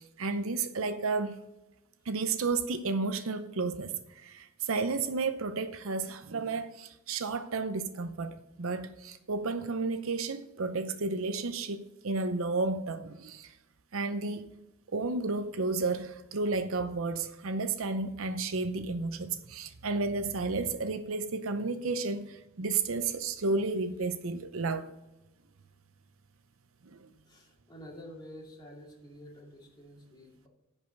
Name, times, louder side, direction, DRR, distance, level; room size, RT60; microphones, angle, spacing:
voice 1, 0.0-1.4 2.1-13.5 13.9-14.4 14.9-24.9 26.9-27.1, right 3 dB, 65° right, 0.7 m, -32 dB
voice 2, 27.3-30.5, equal, 20° left, 2.4 m, -49 dB
10.5 x 5.4 x 6.6 m
head